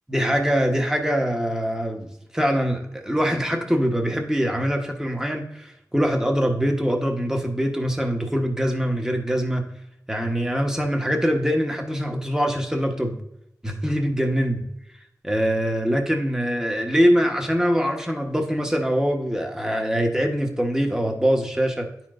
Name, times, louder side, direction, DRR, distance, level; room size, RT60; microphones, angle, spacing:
voice 1, 0.1-9.7 10.1-13.2 13.6-14.6 15.2-21.9, equal, 10° right, 2 dB, 1.0 m, -23 dB
9.9 x 4.4 x 2.5 m, 0.80 s
wide cardioid pair, 60°, 7 cm